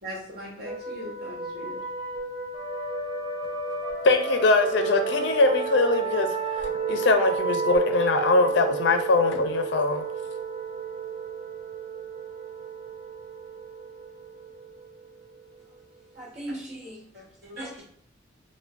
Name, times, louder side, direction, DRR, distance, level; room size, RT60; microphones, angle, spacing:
voice 1, 0.0-1.8 17.1-17.8, equal, 55° right, -4 dB, 1.2 m, -40 dB
sound 1, 0.6-16.0, right 4 dB, 15° right, 0.6 m, -32 dB
voice 2, 4.0-10.0, left 3 dB, 65° left, 7 dB, 0.4 m, -22 dB
voice 3, 16.1-17.7, right 1 dB, 35° right, -5 dB, 1.2 m, -40 dB
4.5 x 2.1 x 2.4 m, 0.63 s
head